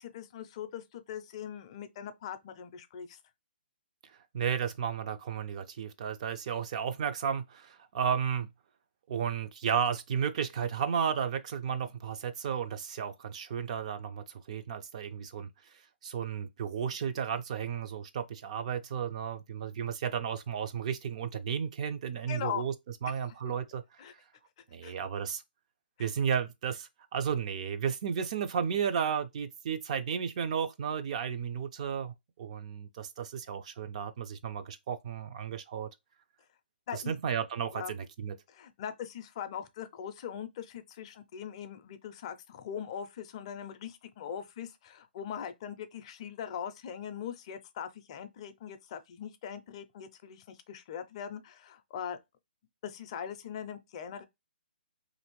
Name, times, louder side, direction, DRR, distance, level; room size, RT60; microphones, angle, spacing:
voice 1, 0.0-3.2 22.3-22.6 23.0-23.3 24.0-24.1 24.8-24.9 26.0-26.1 36.9-37.1 37.7-37.9 38.5-52.2 52.8-54.2, left 8 dB, 35° left, 0.4 m, -41 dB
voice 2, 4.3-8.5 9.1-15.5 16.0-22.7 23.0-24.0 24.7-25.4 26.0-35.9 36.9-38.4, right 7 dB, 40° right, 0.4 m, -33 dB
2.8 x 2.6 x 3.0 m
hypercardioid pair, 160°, 6 cm